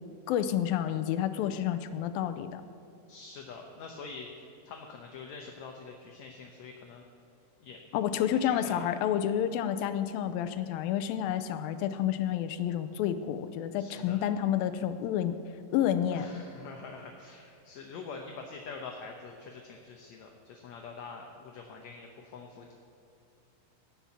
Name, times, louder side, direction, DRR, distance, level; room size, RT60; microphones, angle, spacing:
voice 1, 0.3-2.6 7.9-15.4 15.7-16.3, left 10 dB, 90° left, 10 dB, 2.4 m, -29 dB
voice 2, 3.1-7.0 7.6-7.8 8.4-8.9 13.8-14.2 16.1-22.7, left 4 dB, 70° left, 2 dB, 1.7 m, -45 dB
18.0 x 6.0 x 7.2 m, 2.8 s
omnidirectional pair, 4.1 m